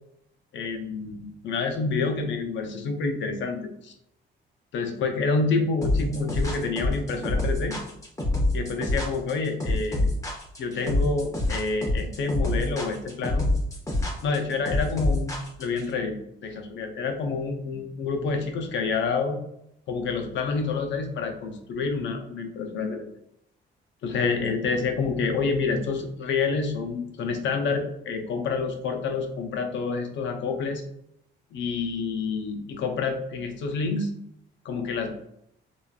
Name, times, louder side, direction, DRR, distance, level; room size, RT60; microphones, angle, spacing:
voice 1, 0.5-3.9 4.7-7.8 8.5-10.1 10.6-13.5 14.2-16.2 16.4-19.4 19.9-23.1 24.0-30.8 31.5-34.1 34.6-35.1, left 4 dB, 70° left, 4 dB, 0.6 m, -28 dB
sound 1, 5.8-15.8, left 1 dB, 15° left, 0.9 m, -26 dB
3.0 x 2.4 x 2.3 m, 0.75 s
cardioid pair, 90°, 20 cm